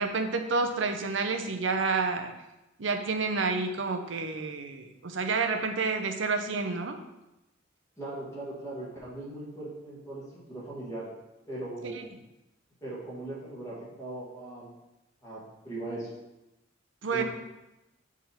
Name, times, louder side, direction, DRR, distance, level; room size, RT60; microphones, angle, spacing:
voice 1, 0.0-2.3 2.8-7.0 11.8-12.1 17.0-17.2, right 4 dB, 70° right, 5 dB, 0.7 m, -29 dB
voice 2, 8.0-11.1 11.5-12.2 12.8-14.7 15.2-16.1 17.1-17.2, right 2 dB, 15° left, -7 dB, 1.9 m, -39 dB
7.2 x 3.6 x 4.4 m, 0.96 s
head